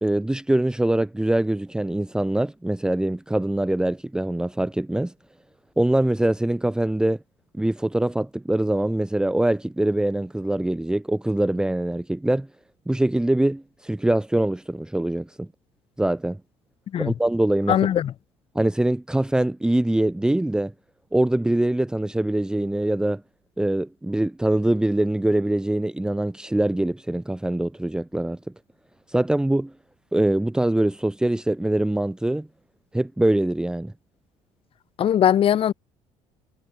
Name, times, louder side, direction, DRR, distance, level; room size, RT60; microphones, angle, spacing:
voice 1, 0.0-5.1 5.8-7.2 7.5-12.5 12.9-15.5 16.0-16.4 17.0-17.8 18.5-20.7 21.1-23.2 23.6-28.4 29.1-29.7 30.1-32.5 32.9-33.9, right 1 dB, 5° right, 1.6 m, -23 dB
voice 2, 17.7-18.1 35.0-35.7, left 10 dB, 45° left, 1.9 m, -20 dB
cardioid pair, 120°, 13 cm